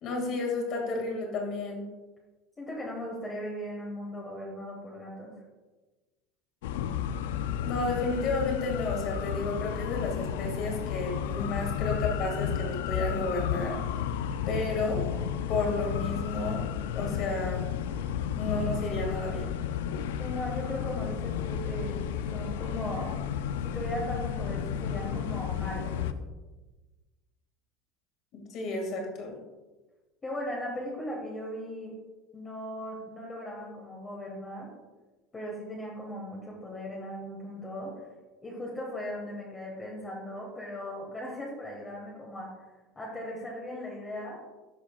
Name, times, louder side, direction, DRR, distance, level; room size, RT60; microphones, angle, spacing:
voice 1, 0.0-1.9 7.6-13.8 14.5-15.0 15.5-16.6 16.9-17.7 18.3-19.6 28.3-29.4, left 2 dB, 50° left, 0 dB, 2.0 m, -32 dB
voice 2, 2.6-5.3 20.2-23.1 23.6-26.1 30.2-32.0 32.3-34.7 35.3-37.9 38.4-42.5 42.9-44.4, left 1 dB, 20° left, -3 dB, 1.3 m, -38 dB
sound 1, 6.6-26.1, left 9 dB, 90° left, 0.4 m, -32 dB
12.5 x 4.4 x 2.3 m, 1.2 s
supercardioid pair, 130°, 0 cm